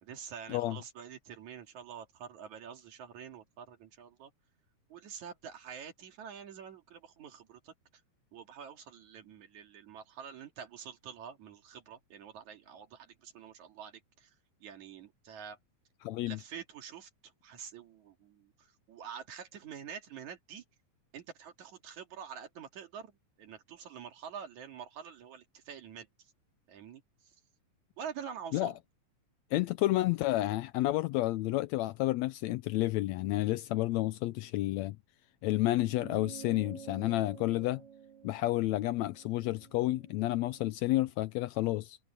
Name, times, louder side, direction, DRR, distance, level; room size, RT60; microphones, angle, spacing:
voice 1, 0.0-4.3 4.9-7.7 8.3-14.3 14.6-15.6 16.3-20.6 21.1-26.1 26.7-27.3 28.0-28.8, right 7 dB, 65° right, 3.4 m, -47 dB
voice 2, 16.0-16.4 28.5-28.7 29.5-35.0 35.4-37.8 38.2-42.0, left 17 dB, 85° left, 1.6 m, -30 dB
sound 1, 35.9-40.6, right 9 dB, 85° right, 6.7 m, -51 dB
omnidirectional pair, 3.7 m